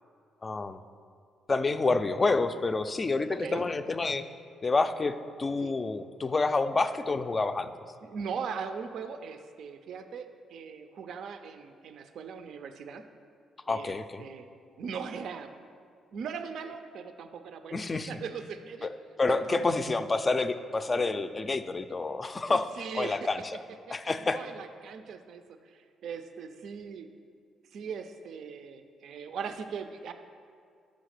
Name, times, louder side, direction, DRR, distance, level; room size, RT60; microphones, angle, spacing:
voice 1, 0.4-0.8 1.5-4.3 4.6-7.7 13.7-14.3 17.7-18.1 18.8-18.9 19.2-23.4 23.9-24.4, left 3 dB, 30° left, 10 dB, 0.3 m, -28 dB
voice 2, 3.3-3.6 5.6-5.7 8.0-13.0 13.7-13.9 14.2-14.5 14.8-15.5 16.1-18.9 19.3-19.7 22.4-23.3 23.9-27.1 27.7-30.1, right 6 dB, 70° right, 8 dB, 0.4 m, -40 dB
5.7 x 5.1 x 6.4 m, 2.3 s
cardioid pair, 90°, 0 cm